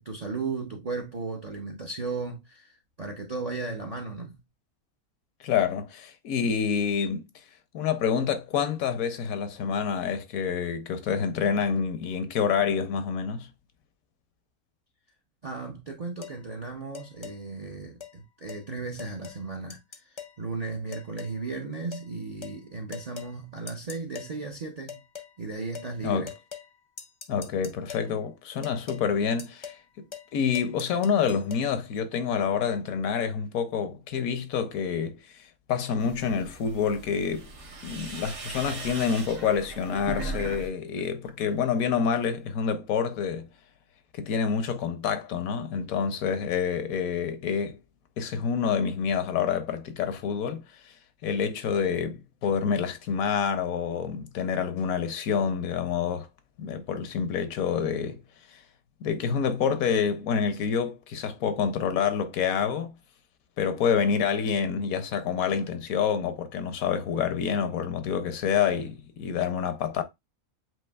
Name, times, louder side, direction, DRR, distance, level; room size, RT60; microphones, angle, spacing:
voice 1, 0.0-4.4 15.4-25.0 25.4-26.3, right 3 dB, 45° right, 0.5 m, -35 dB
voice 2, 5.4-7.3 7.7-13.5 26.0-26.3 27.3-29.7 30.3-35.2 35.7-37.5 37.8-43.5 44.1-47.8 48.2-50.6 51.2-56.3 56.6-58.2 59.0-62.9 63.6-70.0, left 7 dB, 80° left, 1.1 m, -27 dB
sound 1, 16.2-16.4 16.9-17.4 18.0-18.1 18.5-18.6 19.0-19.4 19.7-20.4 20.9-21.4 21.9-22.1 22.4-22.6 22.9-23.3 23.7-24.3 24.9-25.3 25.7-25.9 26.3-26.7 27.0-28.1 28.6-29.0 29.4-29.8 30.1-30.3 30.5-31.6, left 7 dB, 45° left, 0.3 m, -42 dB
sound 2, 36.0-40.7 41.0-41.6, right 3 dB, 65° right, 1.3 m, -38 dB
7.7 x 2.6 x 2.3 m
omnidirectional pair, 1.5 m